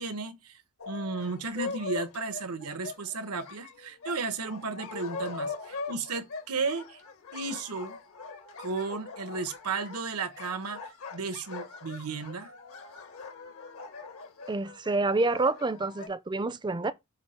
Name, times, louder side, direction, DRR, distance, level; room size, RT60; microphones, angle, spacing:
voice 1, 0.0-7.0 7.3-8.0 8.6-12.5, right 4 dB, 85° right, 1.0 m, -34 dB
sound 1, 0.8-16.1, left 4 dB, 70° left, 1.5 m, -41 dB
voice 2, 14.5-16.9, right 3 dB, 20° right, 0.5 m, -28 dB
8.1 x 2.7 x 5.6 m
head